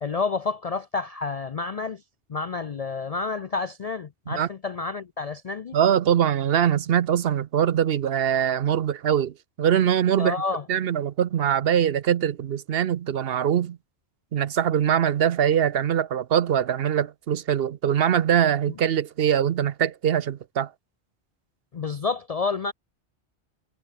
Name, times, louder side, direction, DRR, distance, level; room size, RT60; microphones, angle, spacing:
voice 1, 0.0-2.0 2.3-5.8 10.2-10.6 21.7-22.7, left 4 dB, 45° left, 0.6 m, -29 dB
voice 2, 5.7-10.4 10.7-13.8 14.3-20.7, right 9 dB, 65° right, 0.9 m, -23 dB
omnidirectional pair, 1.1 m